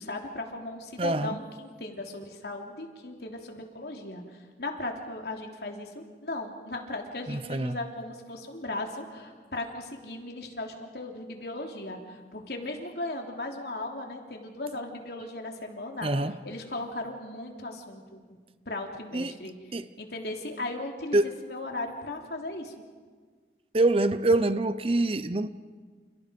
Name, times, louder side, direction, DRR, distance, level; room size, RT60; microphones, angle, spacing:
voice 1, 0.0-16.1 16.4-18.2 18.6-19.5 20.0-22.7, left 2 dB, 70° left, 3.4 m, -37 dB
voice 2, 1.0-1.4 7.3-7.8 16.0-16.4 19.1-19.4 19.7-19.9 21.1-21.3 23.7-25.5, right 2 dB, 30° right, 0.7 m, -25 dB
29.5 x 29.0 x 5.3 m
head